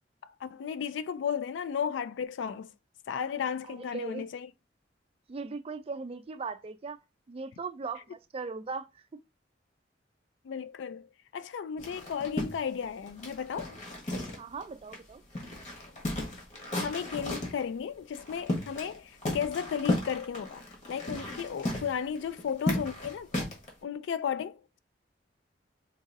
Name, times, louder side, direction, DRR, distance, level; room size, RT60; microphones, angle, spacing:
voice 1, 0.2-2.7 3.1-4.5 10.4-13.8 16.8-20.6 20.9-23.3 23.8-24.8, left 7 dB, 80° left, 0.3 m, -34 dB
voice 2, 3.7-4.3 5.3-7.0 7.3-9.0 14.4-15.2, right 4 dB, 30° right, 0.4 m, -38 dB
sound 1, 11.8-14.6 14.9-15.0 15.3-17.6 18.1-19.0 19.2-23.7, left 1 dB, 40° left, 1.2 m, -34 dB
3.9 x 2.6 x 2.5 m
head